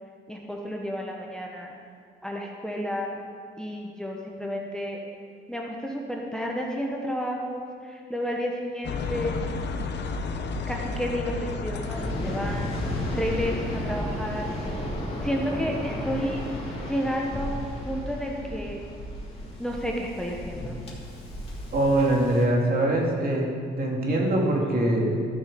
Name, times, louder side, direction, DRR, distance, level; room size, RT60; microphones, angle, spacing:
voice 1, 0.3-1.7 2.2-3.2 3.6-5.0 5.5-9.4 10.7-12.7 13.1-14.5 15.2-16.4 16.9-18.8 19.6-20.8, equal, 5° left, 0 dB, 1.1 m, -31 dB
sound 1, 8.8-14.0, left 4 dB, 60° left, 0.9 m, -32 dB
Waves surf, 11.9-22.4, left 1 dB, 30° left, 2.9 m, -34 dB
voice 2, 21.7-23.5 23.8-25.2, right 1 dB, 50° right, -1 dB, 2.4 m, -23 dB
13.5 x 6.3 x 5.2 m, 2.1 s
cardioid pair, 90°, 20 cm